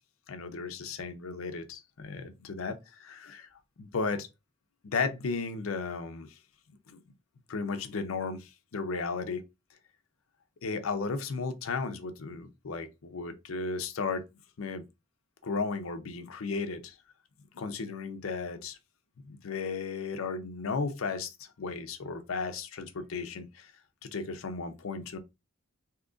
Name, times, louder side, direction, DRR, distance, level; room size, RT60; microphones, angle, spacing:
voice 1, 0.3-3.5 3.8-4.3 4.8-6.4 6.9-7.0 7.5-9.4 10.6-14.2 14.6-14.8 15.4-17.0 17.5-18.8 19.2-23.7 24.0-25.2, left 4 dB, 90° left, 0.6 m, -35 dB
3.8 x 2.8 x 2.3 m
head